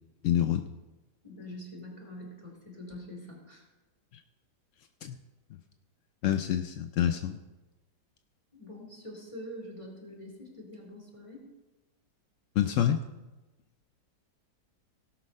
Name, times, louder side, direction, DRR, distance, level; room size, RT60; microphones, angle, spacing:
voice 1, 0.2-0.6 5.0-5.2 6.2-7.4 12.6-13.1, left 10 dB, 70° left, 8 dB, 0.7 m, -27 dB
voice 2, 1.2-3.7 8.5-11.5, left 1 dB, 20° left, -1 dB, 3.0 m, -45 dB
17.0 x 6.2 x 5.4 m, 1.1 s
omnidirectional pair, 1.8 m